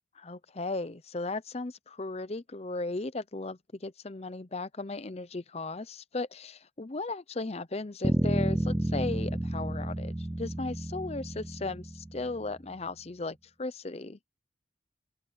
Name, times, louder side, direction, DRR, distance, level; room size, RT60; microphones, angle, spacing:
voice 1, 0.1-14.2, left 3 dB, 30° left, 0.7 m, -36 dB
sound 1, 8.0-12.4, right 1 dB, 10° right, 0.3 m, -31 dB
open air
head